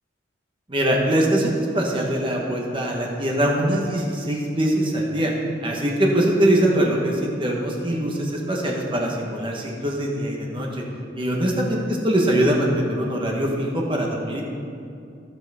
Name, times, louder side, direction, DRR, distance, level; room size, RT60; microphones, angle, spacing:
voice 1, 0.7-5.3 5.6-10.8 11.1-14.4, right 1 dB, 30° right, -1 dB, 1.2 m, -22 dB
15.0 x 6.2 x 3.6 m, 2.5 s
head